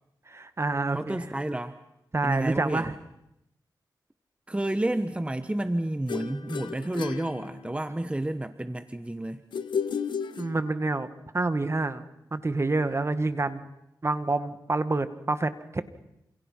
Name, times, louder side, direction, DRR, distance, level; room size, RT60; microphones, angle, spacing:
voice 1, 0.3-1.2 2.1-2.9 10.4-11.1 11.3-12.0 12.3-13.6 14.0-15.8, right 3 dB, 35° right, 11 dB, 1.9 m, -27 dB
voice 2, 0.9-1.8 2.2-2.9 4.5-9.4, right 1 dB, 15° right, 10 dB, 1.3 m, -30 dB
sound 1, 6.1-8.0 9.5-11.1, left 6 dB, 90° left, 1.3 m, -34 dB
29.0 x 28.0 x 5.8 m, 0.84 s
cardioid pair, 60°, 8 cm